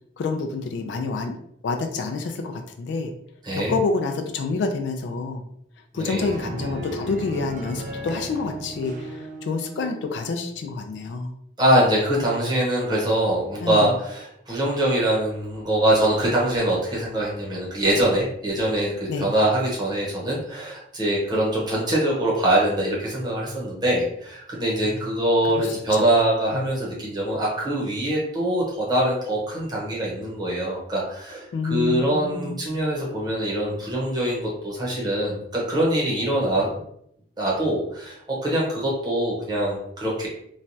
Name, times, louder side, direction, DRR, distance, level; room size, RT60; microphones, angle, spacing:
voice 1, 0.2-1.4 1.6-3.1 3.5-5.4 5.9-11.3 13.6-13.9 19.1-19.3 25.6-26.1 31.5-32.5, left 3 dB, 65° left, 4 dB, 0.3 m, -28 dB
voice 2, 5.9-6.3 11.6-36.7 37.4-40.3, right 1 dB, 20° right, -4 dB, 0.9 m, -23 dB
sound 1, 6.1-10.2, right 1 dB, 40° right, 0.4 m, -35 dB
3.1 x 2.2 x 2.6 m, 0.72 s
head